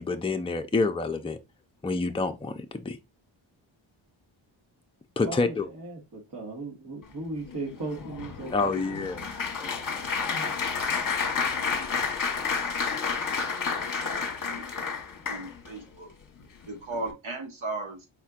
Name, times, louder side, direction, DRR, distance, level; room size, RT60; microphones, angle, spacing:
voice 1, 0.0-1.4 1.8-3.0 5.2-5.7 8.5-9.2 9.6-9.7, left 3 dB, 10° left, 0.5 m, -28 dB
voice 2, 5.2-9.0, right 3 dB, 45° right, 1.6 m, -37 dB
Applause, 7.4-15.8 16.4-16.6 16.9-17.1, left 5 dB, 40° left, 1.1 m, -30 dB
voice 3, 13.6-14.7 15.3-16.1 16.7-18.1, right 2 dB, 70° right, 1.7 m, -37 dB
4.3 x 4.3 x 2.4 m
cardioid pair, 90°, 50 cm